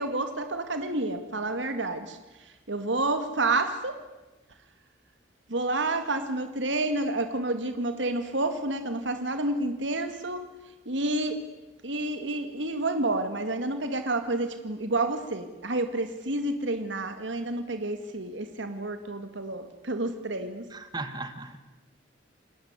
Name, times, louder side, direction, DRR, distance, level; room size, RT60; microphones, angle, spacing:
voice 1, 0.0-2.2 2.7-4.0 5.5-10.5 10.9-11.4 11.8-20.6, right 2 dB, 80° right, 8 dB, 2.1 m, -29 dB
voice 2, 20.7-21.6, right 3 dB, 20° right, 10 dB, 1.9 m, -37 dB
29.0 x 20.0 x 9.7 m, 1.1 s
head